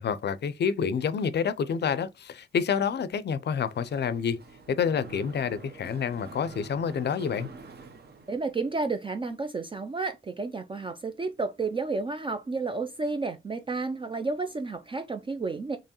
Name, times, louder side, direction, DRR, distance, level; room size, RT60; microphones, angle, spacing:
voice 1, 0.0-4.4 4.7-7.5, left 7 dB, 55° left, 0.5 m, -28 dB
Mechanisms, 3.6-8.8, right 4 dB, 50° right, 0.8 m, -47 dB
voice 2, 8.3-15.8, right 3 dB, 25° right, 0.4 m, -31 dB
4.5 x 3.0 x 2.9 m
wide cardioid pair, 130°, 21 cm